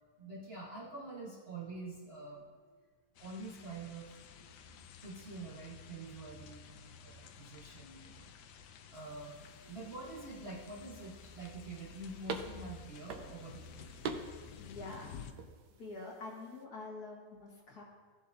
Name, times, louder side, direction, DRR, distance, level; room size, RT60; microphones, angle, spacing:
voice 1, 0.2-2.7 3.2-6.7 7.0-8.3 8.9-13.8, right 2 dB, 40° right, -6 dB, 1.5 m, -47 dB
sound 1, 3.1-15.3, left 6 dB, 80° left, 1.2 m, -53 dB
sound 2, 8.9-16.6, right 5 dB, 75° right, 1.3 m, -47 dB
voice 2, 14.3-15.1 15.8-17.8, left 3 dB, 65° left, -2 dB, 2.1 m, -47 dB
15.5 x 7.5 x 2.7 m, 1.5 s
omnidirectional pair, 1.8 m